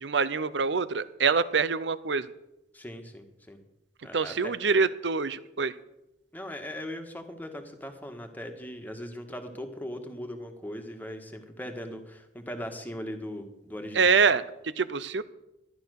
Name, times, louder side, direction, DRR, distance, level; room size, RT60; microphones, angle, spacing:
voice 1, 0.0-2.3 4.1-5.7 13.9-14.4 14.8-15.2, right 5 dB, 75° right, 15 dB, 0.7 m, -25 dB
voice 2, 2.7-3.6 4.0-4.5 6.3-14.1, equal, 10° left, 5 dB, 1.6 m, -39 dB
13.5 x 11.5 x 6.5 m, 0.89 s
head